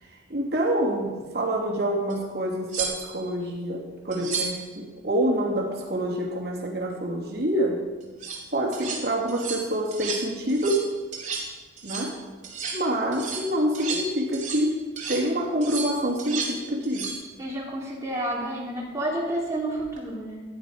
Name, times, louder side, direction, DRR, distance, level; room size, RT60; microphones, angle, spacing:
voice 1, 0.3-7.8 8.5-10.9 11.8-12.2 12.7-14.8 15.1-17.2, right 1 dB, 55° right, -2 dB, 2.9 m, -26 dB
sound 1, 2.1-2.2 2.7-3.3 4.1-4.6 8.0-8.4 8.7-9.0 9.3-9.6 9.9-10.2 10.5-10.9 11.1-11.5 11.8-12.1 12.4-12.8 13.1-14.7 15.0-15.2 15.6-16.6 16.8-17.2 19.8-20.0, right 5 dB, 40° right, 2.7 m, -33 dB
voice 2, 17.4-20.4, right 1 dB, 15° right, -4 dB, 3.1 m, -30 dB
15.0 x 9.5 x 5.1 m, 1.3 s
head